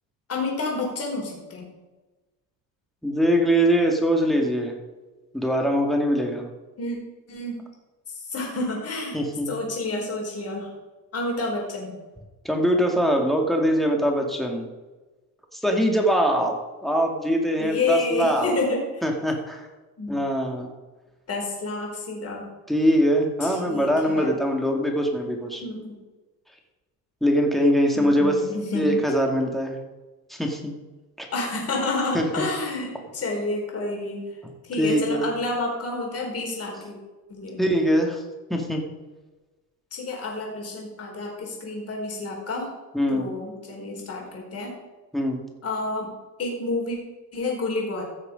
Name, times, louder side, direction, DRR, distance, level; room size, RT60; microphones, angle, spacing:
voice 1, 0.3-1.7 6.8-7.0 7.3-7.6 8.1-9.2 9.5-10.7 11.1-12.0 17.6-19.0 20.0-20.2 21.3-22.5 23.4-24.4 25.6-26.0 27.9-29.0 31.3-34.3 34.6-37.0 37.3-37.6 39.9-42.7 43.1-44.8 45.6-46.1 46.4-47.0 47.3-48.0, left 3 dB, 40° left, 0 dB, 4.3 m, -29 dB
voice 2, 3.0-4.8 5.3-6.5 9.1-9.5 12.4-14.7 15.5-16.5 16.8-18.5 19.0-19.7 20.1-20.7 22.7-25.6 27.2-28.4 28.7-29.8 30.3-30.7 31.2-31.3 32.1-32.4 34.8-35.2 37.6-38.2 38.5-38.8 42.9-43.3 45.1-45.4, equal, ahead, 2 dB, 2.1 m, -22 dB
15.5 x 6.6 x 5.2 m, 1.2 s
cardioid pair, 130°, 37 cm